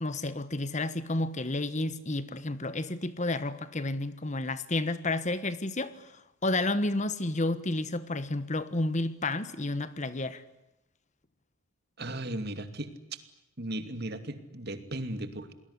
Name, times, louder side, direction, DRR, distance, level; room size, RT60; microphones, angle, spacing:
voice 1, 0.0-10.4, left 2 dB, 35° left, 1.3 m, -31 dB
voice 2, 12.0-12.9 13.6-15.5, right 1 dB, 50° right, 2.7 m, -36 dB
29.0 x 20.5 x 9.8 m
head